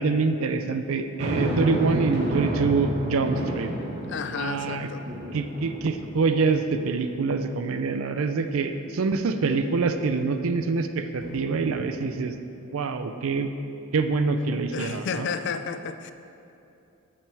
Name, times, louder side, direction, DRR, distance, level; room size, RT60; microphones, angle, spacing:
voice 1, 0.0-3.7 4.3-4.9 5.3-12.3 12.6-13.5 13.9-15.3, right 4 dB, 70° right, 8 dB, 0.4 m, -25 dB
sound 1, 1.2-6.7 7.2-7.3 11.2-12.3, equal, 50° right, 1.2 m, -31 dB
voice 2, 4.1-5.1 14.5-16.1, left 5 dB, 55° left, 10 dB, 0.4 m, -32 dB
14.0 x 6.2 x 3.4 m, 2.7 s
head